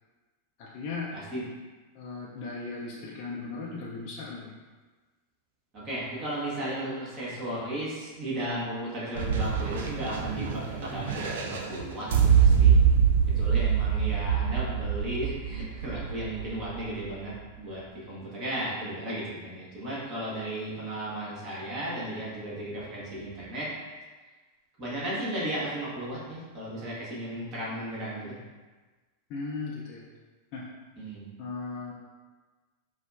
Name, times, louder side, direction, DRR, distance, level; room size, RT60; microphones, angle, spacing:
voice 1, 0.6-1.1 1.9-4.5 29.3-30.0 30.5-30.6 31.4-31.9, left 4 dB, 45° left, -5 dB, 0.5 m, -37 dB
voice 2, 5.7-12.8 13.4-17.8 18.1-23.7 24.8-28.4 31.0-31.2, right 1 dB, 35° right, -7 dB, 1.2 m, -35 dB
sound 1, 9.2-17.1, right 7 dB, 60° right, 0.4 m, -25 dB
4.7 x 2.0 x 2.4 m, 1.3 s
figure-of-eight pair, 90°, 0 cm